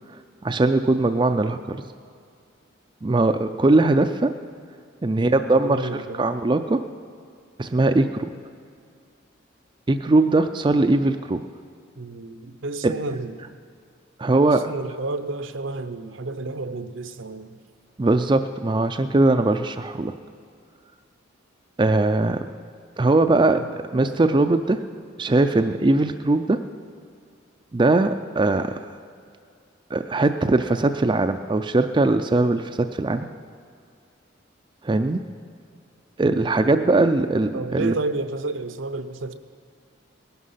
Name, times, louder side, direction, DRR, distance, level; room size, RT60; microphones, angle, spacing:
voice 1, 0.4-1.8 3.0-4.3 5.0-6.8 7.6-8.3 9.9-11.4 12.8-12.9 14.2-14.6 18.0-20.1 21.8-22.5 23.0-24.8 25.2-26.6 27.7-28.9 29.9-33.3 34.8-35.2 36.2-37.9, right 2 dB, 25° right, 7 dB, 0.4 m, -20 dB
voice 2, 5.2-6.3 12.0-13.6 14.4-17.6 23.6-24.5 36.6-36.8 37.5-39.3, right 2 dB, 75° right, 10 dB, 0.8 m, -31 dB
19.0 x 11.5 x 5.7 m, 2.2 s
head